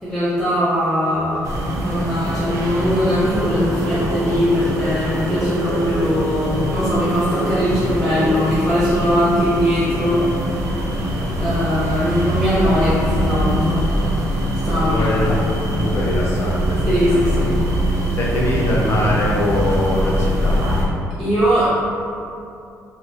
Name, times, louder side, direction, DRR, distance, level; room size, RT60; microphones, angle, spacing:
voice 1, 0.0-1.4 1.8-10.3 11.4-13.9 14.6-15.1 16.9-17.6 21.2-21.7, equal, ahead, -12 dB, 0.6 m, -20 dB
sound 1, 1.4-20.9, equal, 60° right, 0.5 m, -23 dB
sound 2, 3.0-8.9, right 1 dB, 65° left, 1.2 m, -30 dB
voice 2, 14.8-15.3 15.7-17.5 18.2-20.7, left 1 dB, 45° left, -3 dB, 0.6 m, -22 dB
3.7 x 2.3 x 2.7 m, 2.5 s
cardioid pair, 155°, 6 cm